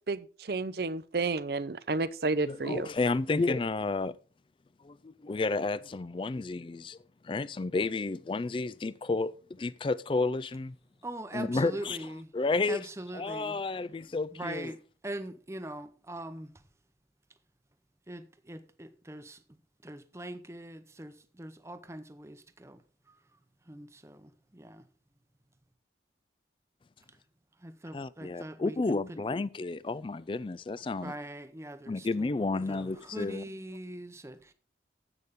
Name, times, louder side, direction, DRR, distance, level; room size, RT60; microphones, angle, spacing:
voice 1, 0.5-2.9, right 3 dB, 55° right, 0.6 m, -31 dB
voice 2, 2.4-4.2 4.8-7.0 7.2-10.8 11.3-12.0 12.3-12.9 13.1-14.7 27.9-31.2 31.9-33.4, left 3 dB, 30° left, 0.3 m, -31 dB
voice 3, 11.0-12.3 12.7-13.5 14.3-16.5 18.1-19.4 19.8-22.8 23.7-24.8 27.6-28.8 31.0-32.3 32.7-34.5, right 1 dB, 15° right, 0.7 m, -42 dB
11.0 x 8.2 x 3.6 m
head